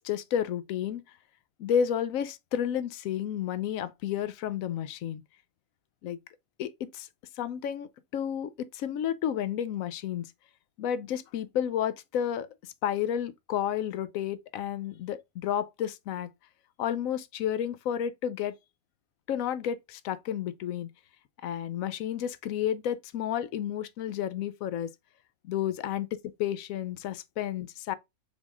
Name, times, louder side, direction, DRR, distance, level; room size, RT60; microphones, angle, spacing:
voice 1, 0.0-1.0 1.6-5.2 6.0-6.2 6.6-7.1 7.4-10.3 10.8-16.3 16.8-18.5 19.3-20.9 21.4-24.9 25.4-26.1 26.4-27.9, left 9 dB, 85° left, 1.0 m, -31 dB
6.3 x 3.5 x 2.4 m
omnidirectional pair, 1.4 m